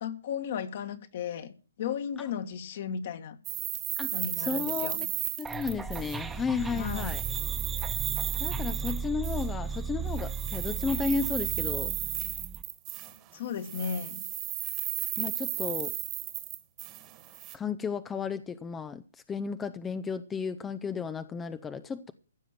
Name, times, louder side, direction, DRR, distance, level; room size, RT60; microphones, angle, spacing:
voice 1, 0.0-1.5 1.8-3.4 4.1-5.1 6.8-7.1 13.3-14.2, left 7 dB, 50° left, 1.9 m, -35 dB
sound 1, 3.4-6.4 6.7-9.5 10.1-13.3 13.6-17.5, right 14 dB, 25° right, 1.7 m, -34 dB
voice 2, 4.0-5.1 5.4-7.2 8.4-11.9 15.2-15.9 17.5-22.1, left 5 dB, 15° left, 0.6 m, -33 dB
sound 2, 5.4-12.6, right 5 dB, 10° right, 1.2 m, -35 dB
15.5 x 6.3 x 9.2 m
hypercardioid pair, 135°, 0 cm